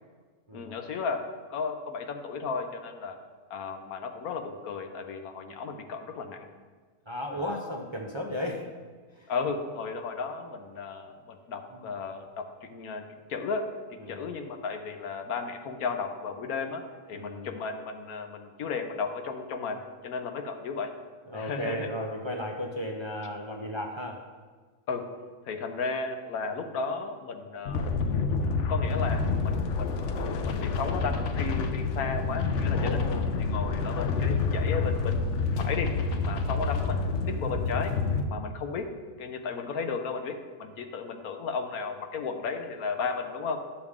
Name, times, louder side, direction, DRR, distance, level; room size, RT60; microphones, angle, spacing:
voice 1, 0.5-1.2 1.5-3.2 3.5-6.5 7.3-7.6 9.3-20.9 21.3-21.9 24.9-25.1 25.5-27.9 28.3-30.0 30.4-35.9 36.2-38.0 38.2-38.9 39.2-43.6, left 5 dB, 90° left, 5 dB, 1.3 m, -34 dB
voice 2, 7.1-8.7 9.2-9.3 11.7-11.9 14.0-14.2 17.1-17.5 21.3-24.2 32.7-33.3 36.2-36.4, left 1 dB, 30° right, -1 dB, 0.6 m, -35 dB
sound 1, 27.7-38.2, left 4 dB, 65° left, 0.9 m, -28 dB
11.5 x 6.8 x 3.6 m, 1.5 s
omnidirectional pair, 1.5 m